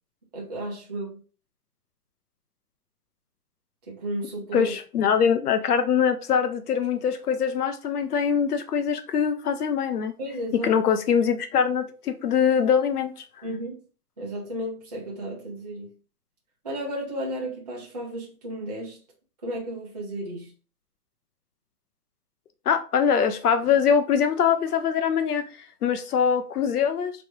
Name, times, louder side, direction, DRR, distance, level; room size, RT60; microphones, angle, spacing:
voice 1, 0.3-1.2 3.9-4.7 10.2-10.7 13.4-13.8 14.2-15.9 16.6-19.0 19.4-20.5, right 1 dB, 25° right, 0.6 m, -33 dB
voice 2, 4.5-10.1 10.5-13.1 22.7-25.5 25.8-27.1, left 7 dB, 75° left, 0.7 m, -23 dB
3.4 x 3.0 x 3.0 m
hypercardioid pair, 175°, 47 cm